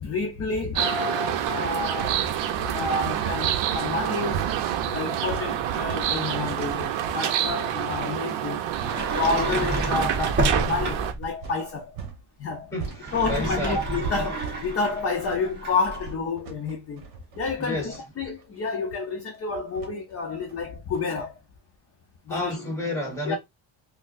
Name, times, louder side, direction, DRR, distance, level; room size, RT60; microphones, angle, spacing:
voice 1, 0.0-2.2 2.6-4.5 4.8-8.6 9.1-12.0 12.4-12.7 13.1-17.0 17.4-21.3 22.3-22.6 23.3-23.4, left 4 dB, 30° left, 0.5 m, -29 dB
sound 1, 0.8-11.1, right 10 dB, 65° right, 0.6 m, -27 dB
sound 2, 4.3-12.2 12.5-21.2, right 7 dB, 50° right, 1.0 m, -40 dB
Sliding door, 8.8-11.3 12.9-16.1, right 2 dB, 20° right, 1.0 m, -29 dB
voice 2, 12.7-13.9 17.6-18.0 22.3-23.4, left 1 dB, 5° left, 1.1 m, -31 dB
4.3 x 2.0 x 2.4 m
cardioid pair, 170°, 47 cm